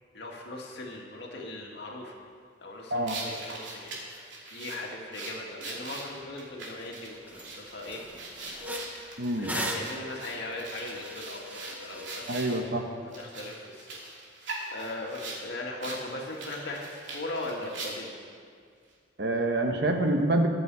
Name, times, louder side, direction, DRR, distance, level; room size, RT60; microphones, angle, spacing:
voice 1, 0.1-2.2 2.6-8.1 9.0-12.3 13.1-14.0 14.7-18.2, left 2 dB, 65° left, -1 dB, 2.2 m, -39 dB
sound 1, 3.1-12.6 13.1-15.4 15.8-16.0 16.3-18.2, right 2 dB, 80° right, 2.9 m, -41 dB
sound 2, 6.8-6.9 7.3-7.5 7.8-12.6, equal, 10° right, 1.1 m, -39 dB
voice 2, 9.2-9.7 12.3-12.9 19.2-20.5, right 1 dB, 60° right, 4 dB, 1.3 m, -27 dB
22.5 x 7.7 x 4.8 m, 2.1 s
head